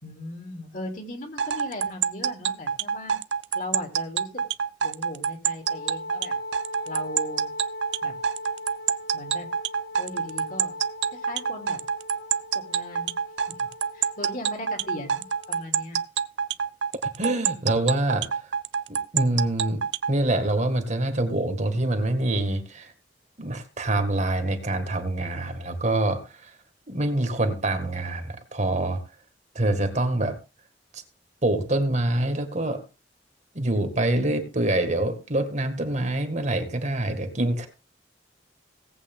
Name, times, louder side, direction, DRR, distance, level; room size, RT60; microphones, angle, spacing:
voice 1, 0.0-3.1 3.5-4.4 4.8-6.3 6.8-7.5 8.0-8.1 9.1-9.5 10.0-10.7 11.1-11.8 12.5-13.1 13.9-16.0, left 1 dB, 50° left, 3 dB, 3.3 m, -38 dB
sound 1, 1.4-20.1, right 7 dB, 85° right, 0.6 m, -26 dB
Wind instrument woodwind instrument, 5.6-15.6, left 2 dB, 75° left, 4.3 m, -40 dB
voice 2, 17.2-18.5 18.9-19.8 20.1-22.9 23.4-26.5 26.9-29.0 29.6-30.4 30.9-31.0 31.4-32.8 33.5-37.7, right 1 dB, 40° right, 7 dB, 2.0 m, -25 dB
17.5 x 8.2 x 3.8 m, 0.31 s
head